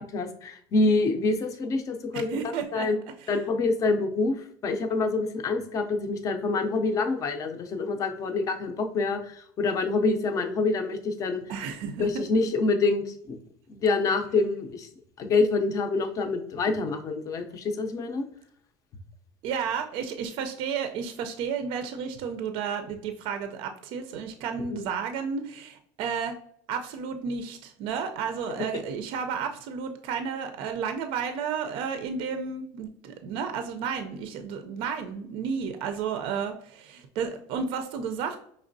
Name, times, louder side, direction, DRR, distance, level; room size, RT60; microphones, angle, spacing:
voice 1, 0.1-2.4 2.7-3.0 3.3-11.4 12.0-13.4 13.7-14.9 15.2-18.2 24.7-24.9, left 3 dB, 30° left, 5 dB, 0.5 m, -26 dB
voice 2, 2.1-2.9 3.2-3.3 11.5-12.2 19.4-26.4 26.7-38.4, right 6 dB, 55° right, 7 dB, 0.5 m, -32 dB
5.2 x 3.1 x 2.6 m, 0.66 s
cardioid pair, 150°, 11 cm